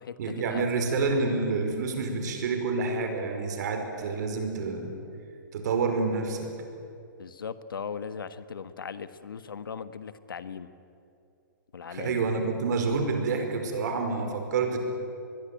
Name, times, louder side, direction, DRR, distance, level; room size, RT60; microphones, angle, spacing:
voice 1, 0.2-4.9 5.5-6.5 11.9-14.8, right 4 dB, 55° right, 5 dB, 5.1 m, -28 dB
voice 2, 7.2-10.7 11.7-12.2, left 6 dB, 85° left, 12 dB, 1.4 m, -38 dB
25.5 x 21.0 x 9.2 m, 2.6 s
hypercardioid pair, 150°, 11 cm